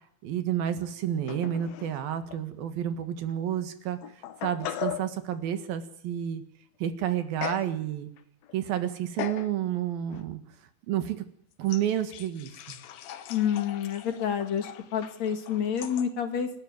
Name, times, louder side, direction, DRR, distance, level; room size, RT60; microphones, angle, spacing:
voice 1, 0.2-4.0 4.4-6.4 6.8-8.1 8.5-10.4 10.9-11.2 11.6-12.8, right 10 dB, 85° right, 10 dB, 3.6 m, -30 dB
sound 1, 1.3-2.0 2.3-2.4 3.3-3.4 4.0-5.1 7.4-7.7 8.2-8.6 9.2-9.5 10.1-10.2 11.7-16.1, left 12 dB, 85° left, 3.0 m, -39 dB
voice 2, 13.3-16.5, left 8 dB, 55° left, 7 dB, 2.9 m, -28 dB
29.0 x 12.5 x 9.5 m, 0.67 s
omnidirectional pair, 4.1 m